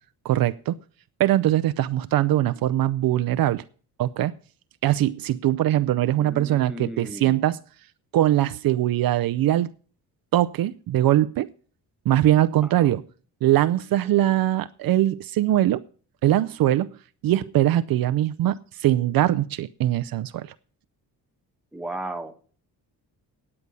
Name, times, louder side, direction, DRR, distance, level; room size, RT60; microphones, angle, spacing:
voice 1, 0.2-0.8 1.2-3.6 4.0-4.3 4.8-7.6 8.1-9.7 10.3-11.5 12.1-13.0 13.4-15.8 16.2-16.9 17.2-20.5, right 13 dB, 65° right, 0.5 m, -21 dB
voice 2, 6.1-7.4 12.6-13.0 21.7-22.3, right 1 dB, ahead, 1.2 m, -36 dB
9.8 x 7.8 x 6.8 m
cardioid pair, 100°, 38 cm